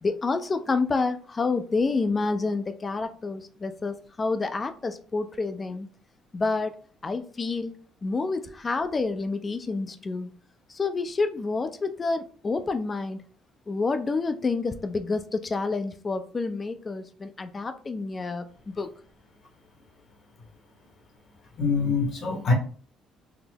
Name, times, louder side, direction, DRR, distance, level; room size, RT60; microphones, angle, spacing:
voice 1, 0.0-5.9 6.3-6.7 7.0-7.7 8.0-10.3 10.7-13.2 13.7-18.9, left 3 dB, 30° left, 9 dB, 0.5 m, -28 dB
voice 2, 21.6-22.5, left 4 dB, 55° left, 3 dB, 1.0 m, -24 dB
3.9 x 2.0 x 2.8 m, 0.43 s
supercardioid pair, 80°, 0 cm